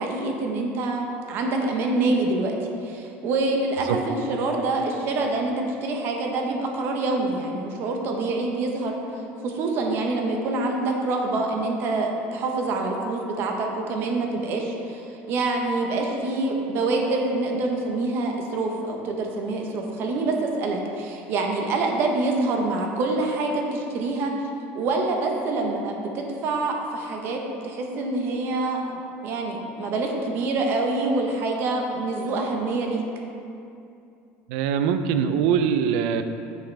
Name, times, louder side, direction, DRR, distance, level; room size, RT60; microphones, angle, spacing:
voice 1, 0.0-2.6 2.8-5.5 5.8-9.0 9.4-24.3 24.7-28.8 29.2-33.0, right 2 dB, 50° right, 1 dB, 0.9 m, -26 dB
voice 2, 34.5-36.2, right 7 dB, 85° right, 9 dB, 0.4 m, -22 dB
7.8 x 5.8 x 3.3 m, 2.6 s
cardioid pair, 150°, 5 cm